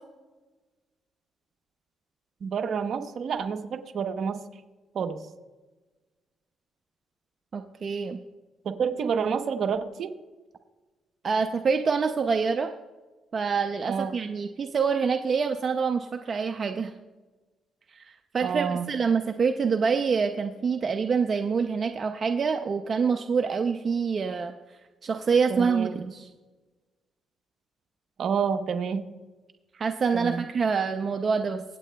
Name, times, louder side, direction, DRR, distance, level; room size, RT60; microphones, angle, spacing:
voice 1, 2.4-4.4 4.9-5.2 8.6-10.1 13.9-14.2 18.4-18.9 25.5-26.0 28.2-29.1 30.1-30.4, right 6 dB, 60° right, 7 dB, 0.9 m, -29 dB
voice 2, 7.5-8.2 11.2-12.7 13.3-16.9 17.9-24.5 25.0-26.3 29.7-31.6, right 5 dB, 45° right, 6 dB, 0.5 m, -26 dB
24.5 x 8.3 x 2.3 m, 1.2 s
cardioid pair, 90°, 0 cm